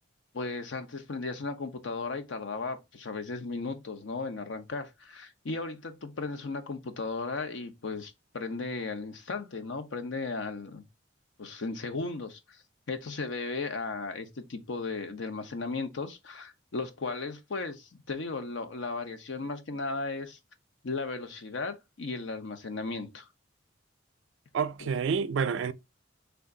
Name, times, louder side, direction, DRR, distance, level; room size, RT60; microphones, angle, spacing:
voice 1, 0.3-10.8 11.4-12.6 12.9-20.4 20.8-23.3 24.8-24.9, left 3 dB, 75° left, 0.7 m, -36 dB
voice 2, 24.5-25.7, right 6 dB, 70° right, 0.3 m, -28 dB
3.4 x 2.5 x 3.6 m
head